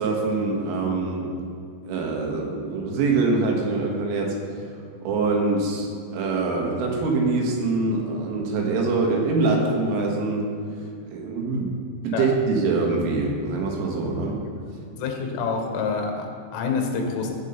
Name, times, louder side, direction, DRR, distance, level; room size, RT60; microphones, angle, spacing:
voice 1, 0.0-1.3 1.9-4.6 5.0-10.5 11.1-11.7 12.0-14.4, right 3 dB, 80° right, 1 dB, 3.9 m, -24 dB
voice 2, 14.9-17.3, left 4 dB, 80° left, 3 dB, 3.7 m, -27 dB
16.5 x 5.5 x 5.5 m, 2.5 s
omnidirectional pair, 5.7 m